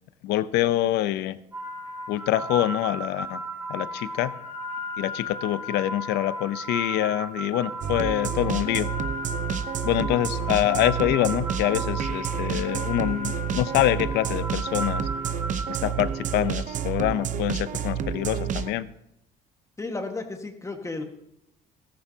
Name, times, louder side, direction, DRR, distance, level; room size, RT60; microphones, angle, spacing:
voice 1, 0.2-1.4 2.1-3.4 3.7-4.3 5.0-8.9 9.8-15.0 15.7-18.9, left 14 dB, 85° left, 15 dB, 0.7 m, -25 dB
sound 1, 1.5-16.6, equal, 15° right, 4.8 m, -35 dB
sound 2, 7.8-18.7, right 8 dB, 50° right, 0.8 m, -29 dB
voice 2, 19.8-21.0, left 3 dB, 15° left, 4 dB, 1.5 m, -33 dB
14.5 x 14.0 x 2.8 m, 0.81 s
cardioid pair, 110°, 17 cm